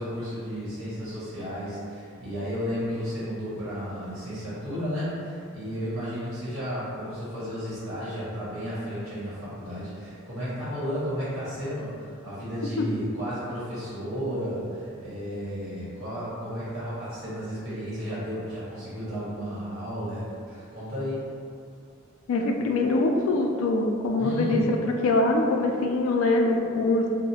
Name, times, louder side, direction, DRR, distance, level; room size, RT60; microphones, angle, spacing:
voice 1, 0.0-21.2 24.2-24.7, equal, 70° right, -11 dB, 1.1 m, -33 dB
voice 2, 22.3-27.1, left 2 dB, 70° left, 2 dB, 0.3 m, -23 dB
2.7 x 2.0 x 2.7 m, 2.3 s
head